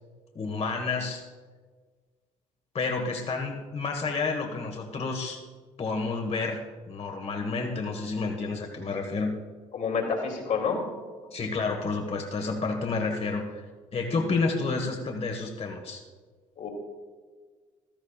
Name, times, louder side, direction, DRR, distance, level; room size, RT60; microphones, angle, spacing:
voice 1, 0.3-1.2 2.7-5.4 5.8-9.3 11.3-13.6 13.9-16.0, left 4 dB, 45° left, 2 dB, 1.5 m, -30 dB
voice 2, 9.7-10.8 16.6-16.7, left 5 dB, 60° left, 0 dB, 2.8 m, -28 dB
15.0 x 13.0 x 2.4 m, 1.5 s
hypercardioid pair, 60°, 15 cm